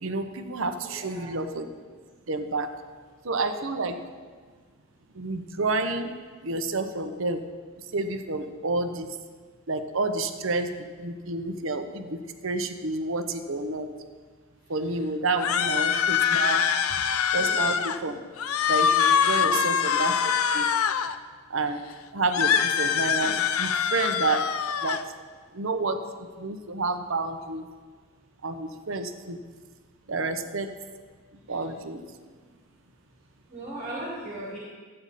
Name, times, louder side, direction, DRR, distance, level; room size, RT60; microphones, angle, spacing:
voice 1, 0.0-1.7 2.3-2.7 3.2-4.0 5.1-6.1 6.4-7.4 7.9-9.1 9.7-13.9 14.7-16.6 17.3-18.2 18.7-20.2 20.5-20.7 21.5-21.8 22.1-24.5 24.8-25.0 25.5-26.1 26.4-27.7 28.4-29.4 30.1-30.7 31.5-32.0, right 3 dB, 60° right, 7 dB, 0.8 m, -29 dB
voice 2, 0.8-1.4 16.9-17.0 17.3-17.8 19.4-19.6 22.5-22.6 31.5-31.6 33.5-34.6, right 1 dB, 35° right, -6 dB, 2.3 m, -38 dB
sound 1, 15.4-18.0 18.4-21.2 22.3-25.0, left 7 dB, 80° left, 0.5 m, -24 dB
13.0 x 8.7 x 4.1 m, 1.5 s
head